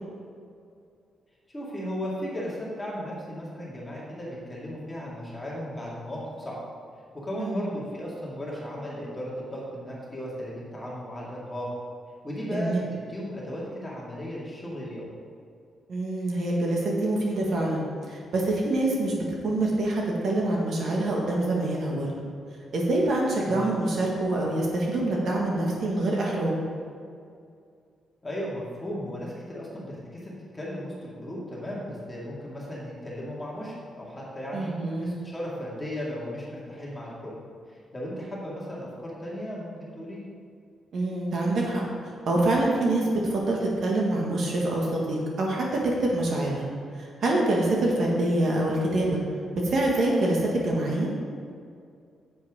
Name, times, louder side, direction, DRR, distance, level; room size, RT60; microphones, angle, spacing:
voice 1, 1.5-6.6 7.1-11.7 12.2-15.1 23.4-23.7 28.2-34.7 35.0-37.4 37.7-40.2, equal, 15° left, -6 dB, 2.2 m, -36 dB
voice 2, 7.4-7.7 12.5-12.8 15.9-22.1 22.7-26.6 34.5-35.1 40.9-41.8 42.3-46.7 47.0-49.2 49.6-51.1, right 2 dB, 55° right, -2 dB, 1.8 m, -25 dB
10.5 x 7.9 x 3.7 m, 2.3 s
wide cardioid pair, 160°, 0 cm